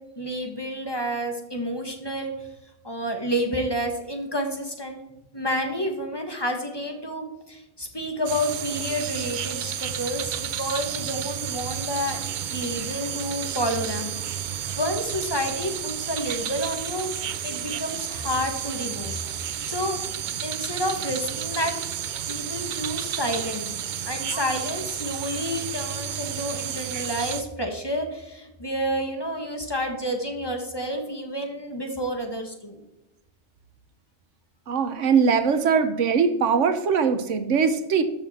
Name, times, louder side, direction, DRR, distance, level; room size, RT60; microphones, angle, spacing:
voice 1, 0.2-2.3 2.8-5.0 5.3-17.1 17.4-19.2 19.6-20.0 20.4-21.8 22.3-23.7 24.1-32.8, equal, 20° left, 3 dB, 1.5 m, -29 dB
sound 1, 8.2-27.4, right 9 dB, 55° right, 0.5 m, -31 dB
voice 2, 34.7-38.0, right 6 dB, 85° right, 10 dB, 1.2 m, -21 dB
13.5 x 6.1 x 4.3 m, 0.95 s
omnidirectional pair, 1.2 m